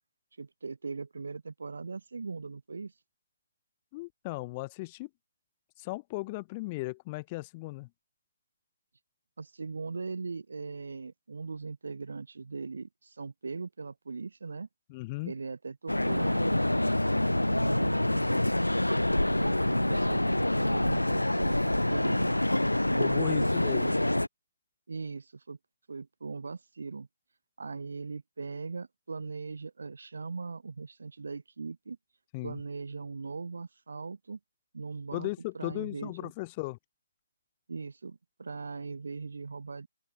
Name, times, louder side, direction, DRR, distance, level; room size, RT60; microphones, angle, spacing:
voice 1, 0.4-2.9 9.4-14.7 15.3-16.6 17.5-18.4 19.4-22.4 22.9-24.0 24.9-25.6 25.9-27.1 27.6-32.0 32.4-34.4 34.7-36.3 37.7-39.9, right 4 dB, 60° right, 5.4 m, -40 dB
voice 2, 3.9-5.1 5.8-7.9 14.9-15.3 23.0-24.0 32.3-32.6 35.1-36.8, left 23 dB, 25° left, 1.4 m, -36 dB
sound 1, 15.9-24.3, left 1 dB, 85° left, 0.5 m, -26 dB
open air
figure-of-eight pair, 140°, 0 cm